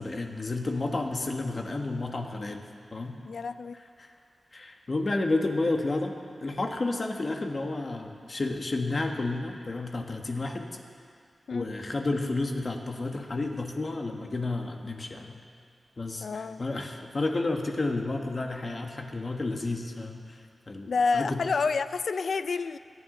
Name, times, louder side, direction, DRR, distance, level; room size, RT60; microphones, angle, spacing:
voice 1, 0.0-2.6 2.9-3.2 4.0-4.1 4.5-6.1 6.4-10.7 11.5-15.4 16.0-20.4 20.7-21.4, left 2 dB, 40° left, 3 dB, 1.4 m, -31 dB
voice 2, 3.2-3.8 11.5-11.7 16.2-16.6 20.9-22.8, left 4 dB, 75° left, 13 dB, 0.4 m, -28 dB
26.5 x 9.5 x 3.9 m, 2.2 s
wide cardioid pair, 95°, 0 cm